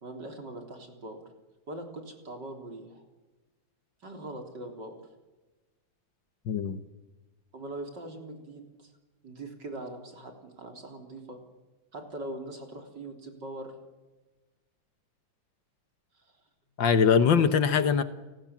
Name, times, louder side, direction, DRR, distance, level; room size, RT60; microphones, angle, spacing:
voice 1, 0.0-1.2 1.7-3.0 4.0-5.0 7.5-8.9 9.2-11.4 11.9-13.7 16.1-16.3 17.4-17.5, right 1 dB, 35° right, 4 dB, 4.0 m, -41 dB
voice 2, 6.5-6.8 16.8-18.0, left 6 dB, 65° left, 11 dB, 1.2 m, -22 dB
29.5 x 19.5 x 7.4 m, 1.2 s
omnidirectional pair, 3.7 m